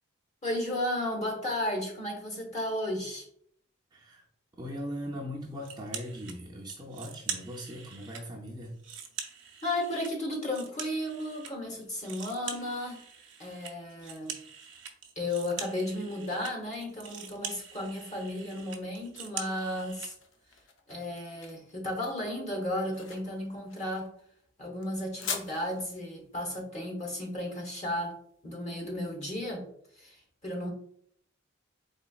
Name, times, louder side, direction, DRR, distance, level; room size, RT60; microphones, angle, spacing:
voice 1, 0.4-3.3 9.6-13.0 13.4-14.4 15.2-20.1 20.9-24.1 24.6-28.2 28.4-29.7 30.0-30.2 30.4-30.7, left 1 dB, 35° left, -1 dB, 1.1 m, -34 dB
voice 2, 3.9-4.2 4.6-8.7, equal, 20° right, -1 dB, 0.5 m, -39 dB
sound 1, 5.6-6.4 6.7-8.2 8.6-11.5 11.8-20.1, right 7 dB, 60° right, 0.6 m, -43 dB
sound 2, 19.7-28.7, left 5 dB, 65° left, 0.6 m, -44 dB
4.1 x 3.6 x 2.3 m, 0.65 s
head